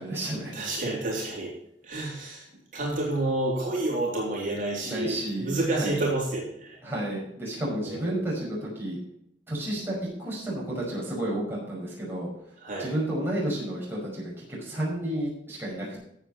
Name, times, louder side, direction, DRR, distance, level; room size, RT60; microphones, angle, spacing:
voice 1, 0.0-0.6 4.8-6.0 6.8-9.0 9.5-12.3 12.8-16.0, right 1 dB, 15° right, -6 dB, 5.6 m, -31 dB
voice 2, 0.5-1.5 1.9-2.4 2.7-6.8 7.8-8.1 12.6-12.9, right 2 dB, 45° right, -3 dB, 3.5 m, -29 dB
15.0 x 7.5 x 4.4 m, 0.74 s
head